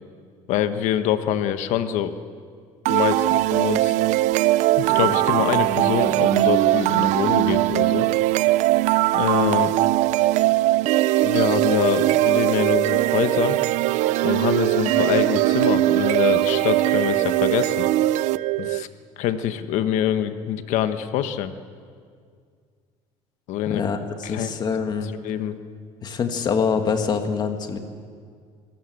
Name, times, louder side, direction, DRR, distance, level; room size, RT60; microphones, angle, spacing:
voice 1, 0.5-2.1 2.9-3.9 4.8-8.1 9.1-9.8 11.2-13.6 14.2-17.9 18.6-18.9 19.2-21.5 23.5-23.8 24.3-24.5 25.2-25.6, left 10 dB, 70° left, 10 dB, 1.3 m, -25 dB
sound 1, 2.9-18.8, right 17 dB, 70° right, 0.5 m, -20 dB
voice 2, 23.7-25.1 26.0-27.8, left 6 dB, 35° left, 6 dB, 1.8 m, -25 dB
25.0 x 17.0 x 7.8 m, 2.1 s
cardioid pair, 150°, 13 cm